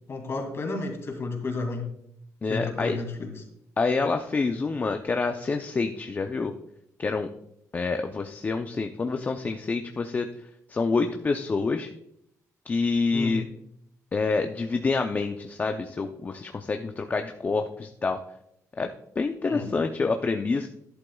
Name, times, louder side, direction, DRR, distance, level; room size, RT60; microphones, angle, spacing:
voice 1, 0.1-1.9 2.5-3.4 13.1-13.4 19.5-19.7, left 3 dB, 45° left, 3 dB, 2.4 m, -32 dB
voice 2, 2.4-3.0 3.8-6.5 7.0-7.3 7.7-10.3 10.7-11.9 12.7-13.5 14.1-18.2 18.8-20.7, left 4 dB, 30° left, 5 dB, 0.6 m, -27 dB
11.5 x 11.0 x 2.3 m, 0.75 s
cardioid pair, 115°, 6 cm